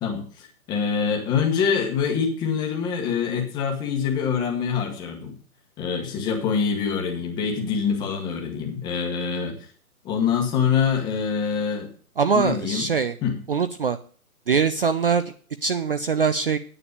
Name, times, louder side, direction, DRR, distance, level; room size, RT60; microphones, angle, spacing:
voice 1, 0.0-5.3 5.8-9.6 10.0-11.9 12.3-12.8 13.2-13.4, left 6 dB, 10° left, 1 dB, 1.2 m, -25 dB
voice 2, 12.2-13.2 13.5-14.0 14.5-15.2 15.6-16.6, right 5 dB, 40° right, 12 dB, 0.5 m, -22 dB
9.9 x 7.2 x 6.6 m, 0.43 s
hypercardioid pair, 165°, 43 cm